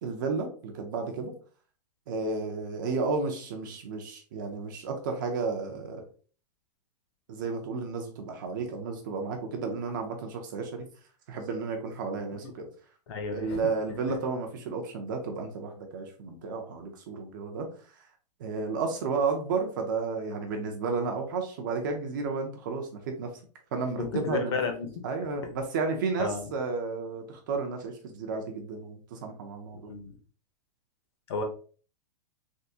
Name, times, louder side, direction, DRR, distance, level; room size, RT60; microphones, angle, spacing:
voice 1, 0.0-1.3 2.1-6.1 7.3-10.9 11.3-12.7 13.3-17.7 18.4-23.3 23.7-24.6 25.0-29.8, right 4 dB, 30° right, 3 dB, 0.4 m, -32 dB
voice 2, 13.1-13.6 24.0-25.0 26.2-26.5 29.8-30.2 31.3-31.4, left 4 dB, 40° left, 5 dB, 0.6 m, -32 dB
3.5 x 2.4 x 2.6 m, 0.40 s
supercardioid pair, 175°, 21 cm